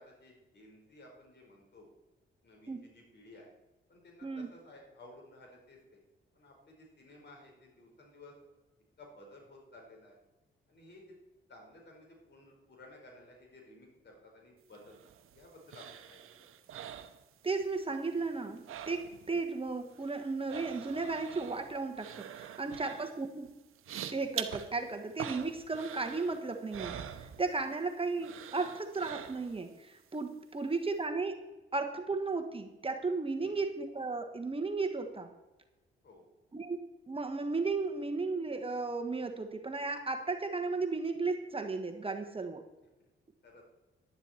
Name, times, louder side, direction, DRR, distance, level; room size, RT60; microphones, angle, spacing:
voice 1, 0.0-1.9 2.4-3.5 3.9-6.0 6.3-8.3 9.0-10.2 10.7-11.1 11.5-16.5 22.8-22.9 30.5-30.6 33.4-33.6 36.0-36.3 43.4-43.6, left 1 dB, 55° left, 0 dB, 4.6 m, -55 dB
sound 1, 14.7-17.8 18.1-19.4 19.7-27.8 28.2-29.7 30.1-30.2, right 9 dB, 80° right, 0.8 m, -45 dB
voice 2, 17.4-23.5 24.1-35.3 36.5-36.8 37.1-42.6, right 3 dB, 25° right, 5 dB, 1.3 m, -35 dB
11.5 x 10.5 x 4.4 m, 1.1 s
cardioid pair, 70°, 21 cm